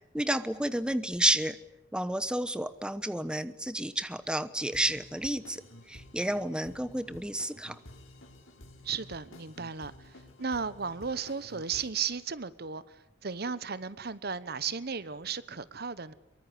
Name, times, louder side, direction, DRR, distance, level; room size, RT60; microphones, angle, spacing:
voice 1, 0.1-1.6 1.9-5.6 5.9-7.8, right 1 dB, 5° right, 1.0 m, -30 dB
sound 1, 4.6-11.9, left 1 dB, 85° left, 4.6 m, -52 dB
voice 2, 8.8-10.1 10.4-12.8 13.2-16.1, right 6 dB, 55° right, 1.1 m, -35 dB
24.5 x 23.0 x 9.9 m
head